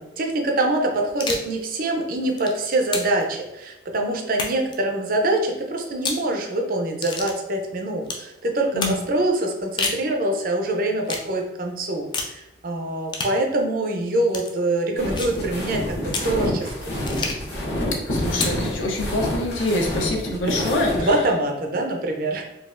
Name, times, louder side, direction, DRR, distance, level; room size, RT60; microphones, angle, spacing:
voice 1, 0.0-16.9 20.4-20.6 20.9-22.4, right 1 dB, 45° right, 2 dB, 0.5 m, -24 dB
sound 1, 1.1-1.5 2.2-3.2 4.3-4.8 5.9-6.3 7.0-7.4 8.0-8.3 8.8-9.0 9.6-10.0 11.1-11.3 12.1-12.4 13.1-13.4 14.3-14.5 15.2-15.4 16.1-16.3 17.1-17.5 18.3-18.6, left 3 dB, 25° left, 0.3 m, -29 dB
sound 2, 15.0-21.0, left 1 dB, 55° left, 1.0 m, -28 dB
voice 2, 18.1-21.1, left 1 dB, 85° left, 1 dB, 0.7 m, -25 dB
3.9 x 2.4 x 2.5 m, 0.93 s
head